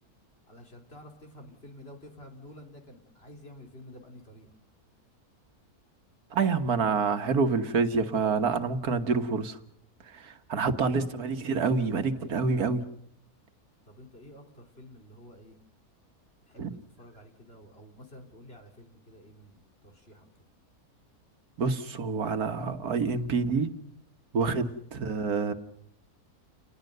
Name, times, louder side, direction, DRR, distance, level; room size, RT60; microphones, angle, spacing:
voice 1, 0.5-4.5 13.8-15.6 16.5-20.3 24.3-24.5, left 1 dB, 40° left, 3 dB, 3.5 m, -50 dB
voice 2, 6.3-9.6 10.0-12.8 16.6-16.7 21.6-23.7 24.3-25.5, right 4 dB, 75° right, 8 dB, 1.9 m, -27 dB
29.5 x 20.0 x 6.7 m, 0.70 s
omnidirectional pair, 1.6 m